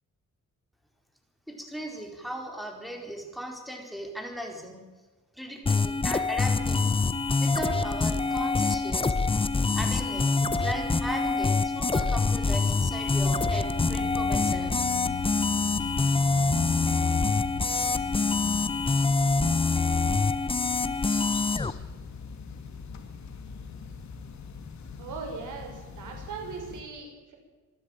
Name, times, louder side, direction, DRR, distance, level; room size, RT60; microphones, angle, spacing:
voice 1, 1.5-4.8 5.3-6.9 7.4-9.2 9.7-14.8, equal, ahead, 2 dB, 4.5 m, -37 dB
sound 1, 5.7-21.7, left 3 dB, 20° left, 0.9 m, -25 dB
sound 2, 13.1-26.8, left 5 dB, 65° left, 2.7 m, -39 dB
voice 2, 25.0-27.4, right 5 dB, 85° right, 2 dB, 6.7 m, -39 dB
26.0 x 12.0 x 9.1 m, 1.3 s
wide cardioid pair, 135°, 30 cm